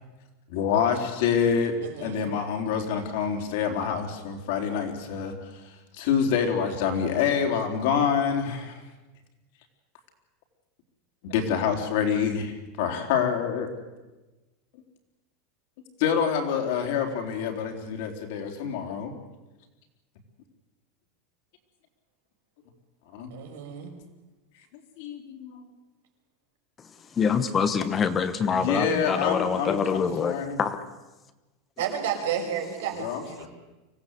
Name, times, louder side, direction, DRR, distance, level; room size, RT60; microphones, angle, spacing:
voice 1, 0.5-5.6 6.0-8.8 11.2-13.7 16.0-19.1 23.1-23.3 25.0-25.6 28.5-30.6 33.0-33.5, left 7 dB, 60° left, 3 dB, 3.9 m, -27 dB
voice 2, 1.8-2.4 23.3-23.9 31.8-33.5, right 8 dB, 85° right, 3 dB, 5.6 m, -32 dB
voice 3, 27.2-30.8, left 6 dB, 20° left, 11 dB, 1.0 m, -25 dB
25.0 x 16.5 x 8.3 m, 1.1 s
supercardioid pair, 165°, 0 cm